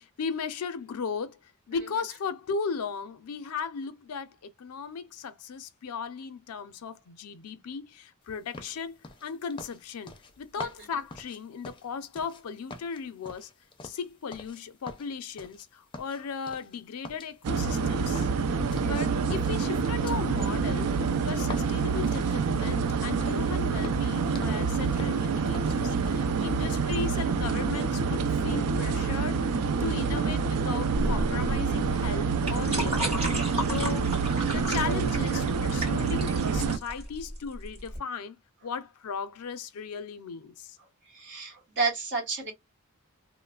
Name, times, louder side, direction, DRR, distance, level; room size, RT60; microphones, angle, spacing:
voice 1, 0.0-1.4 1.7-13.5 13.8-18.3 18.8-20.9 21.2-29.5 29.8-33.3 33.7-34.2 34.5-38.4 38.6-40.8, left 5 dB, 85° left, 0.4 m, -36 dB
sound 1, 8.5-12.4 12.7-14.6 14.9-15.7 15.9-16.8 17.0-19.0 19.3-22.9 23.2-23.5 23.7-24.6 24.9-25.8 26.1-26.3, left 3 dB, 20° left, 0.5 m, -45 dB
sound 2, 17.4-36.8, right 5 dB, 85° right, 0.4 m, -27 dB
sound 3, 30.9-38.0, equal, 25° right, 2.0 m, -33 dB
voice 2, 41.1-42.5, right 4 dB, 55° right, 1.2 m, -30 dB
3.0 x 2.0 x 2.3 m
head